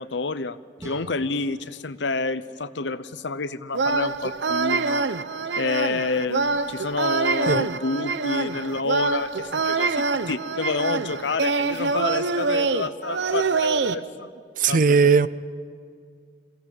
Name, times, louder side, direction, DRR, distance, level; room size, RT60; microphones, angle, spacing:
voice 1, 0.0-5.1 5.6-14.3 14.7-15.3, left 3 dB, 80° left, 15 dB, 0.8 m, -29 dB
sound 1, 0.8-3.7, right 1 dB, 20° right, 2.2 m, -46 dB
sound 2, 3.7-13.9, right 4 dB, 75° right, 0.8 m, -25 dB
voice 2, 14.6-15.3, right 5 dB, 50° right, 16 dB, 0.6 m, -18 dB
23.0 x 16.0 x 9.3 m, 2.2 s
head